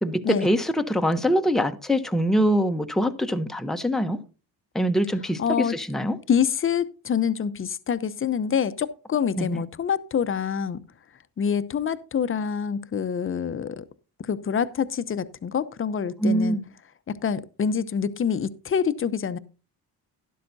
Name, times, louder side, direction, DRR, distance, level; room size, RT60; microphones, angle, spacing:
voice 1, 0.0-4.2 4.7-6.2 9.4-9.6 16.2-16.6, equal, ahead, 0.8 m, -24 dB
voice 2, 5.4-5.8 6.3-10.8 11.4-13.8 14.3-16.6 17.1-19.4, left 7 dB, 35° left, 0.7 m, -26 dB
12.5 x 11.0 x 2.7 m
cardioid pair, 95°, 39 cm